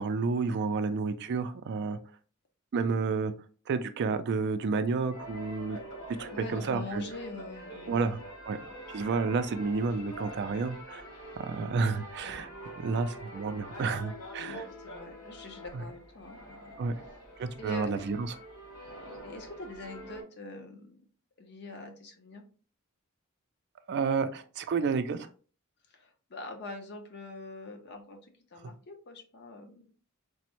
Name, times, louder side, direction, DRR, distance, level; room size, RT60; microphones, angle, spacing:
voice 1, 0.0-2.0 2.7-3.3 3.7-5.8 6.2-7.0 7.9-8.2 8.5-8.6 8.9-11.0 11.4-12.5 12.8-14.6 15.7-15.8 16.8-16.9 17.4-18.3 23.9-25.3, right 4 dB, 55° right, 10 dB, 0.3 m, -30 dB
sound 1, 5.1-20.2, equal, 75° left, 1.2 m, -45 dB
voice 2, 6.3-8.2 9.2-9.5 11.5-11.8 14.4-16.8 17.6-17.9 19.2-21.0 21.4-22.4 25.9-28.2 28.5-29.8, left 2 dB, 55° left, 4 dB, 0.7 m, -44 dB
3.3 x 2.1 x 2.9 m, 0.38 s
head